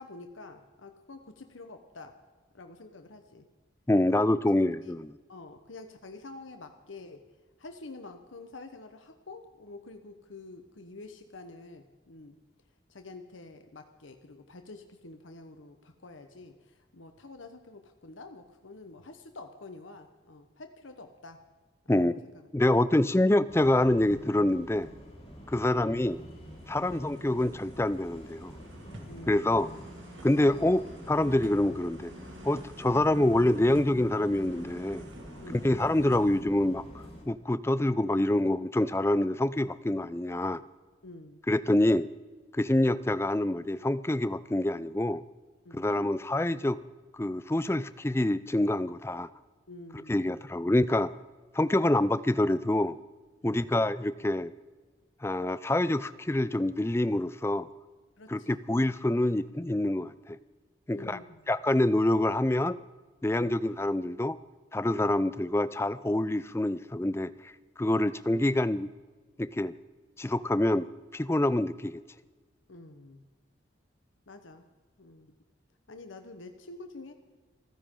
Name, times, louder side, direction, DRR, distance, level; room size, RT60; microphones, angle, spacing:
voice 1, 0.0-2.1 2.5-3.5 4.8-4.9 5.3-7.2 7.6-12.3 12.9-21.4 21.8-22.1 29.1-29.6 35.4-35.7 41.0-41.4 45.6-45.8 49.7-50.4 53.4-53.6 58.2-58.6 60.9-61.4 72.7-73.2 74.3-74.6 75.0-75.3 75.9-77.1, left 3 dB, 90° left, 6 dB, 1.1 m, -48 dB
voice 2, 3.9-5.1 21.9-22.1 22.5-24.9 25.5-26.2 26.7-28.5 29.3-29.7 30.2-32.1 32.4-35.0 35.5-40.6 41.5-42.1 42.5-45.2 45.7-46.8 47.1-49.3 50.1-51.1 51.5-53.0 53.4-54.5 55.2-57.7 58.3-60.4 60.9-61.2 61.5-62.8 63.2-64.4 64.7-67.5 67.8-68.9 69.4-69.7 70.2-70.9 71.1-72.0, left 1 dB, 15° left, 15 dB, 0.4 m, -26 dB
sound 1, 23.5-37.2, equal, 30° left, 4.1 m, -47 dB
sound 2, 24.8-25.0 25.5-36.4, right 1 dB, 80° right, 2.5 m, -49 dB
29.5 x 10.0 x 3.8 m, 1.3 s
head